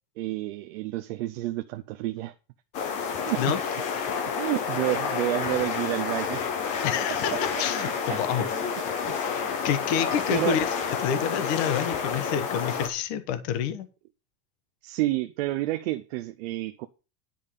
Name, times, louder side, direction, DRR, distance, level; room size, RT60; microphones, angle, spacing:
voice 1, 0.2-2.3 3.1-3.6 4.4-6.8 7.0-7.1 8.1-8.2 8.6-8.7 9.1-9.2 10.3-10.6 14.8-16.9, right 17 dB, 40° right, 0.6 m, -30 dB
sound 1, 2.7-12.9, left 6 dB, 15° left, 0.4 m, -29 dB
voice 2, 6.8-8.5 9.6-10.7 11.0-13.9, left 9 dB, 40° left, 1.3 m, -28 dB
10.5 x 5.5 x 6.8 m
supercardioid pair, 170°, 50 cm